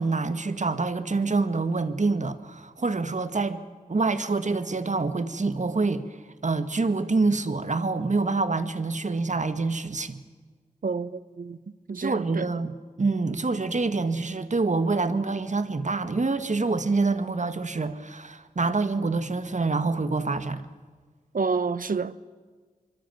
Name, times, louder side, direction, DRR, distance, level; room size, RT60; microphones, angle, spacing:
voice 1, 0.0-3.6 3.9-10.2 12.0-12.7 13.0-20.7, right 3 dB, 55° right, 1.9 m, -26 dB
voice 2, 10.8-11.6 11.9-12.5 21.3-22.2, right 4 dB, 75° right, 1.1 m, -29 dB
25.5 x 24.0 x 9.4 m
cardioid pair, 50°, 14 cm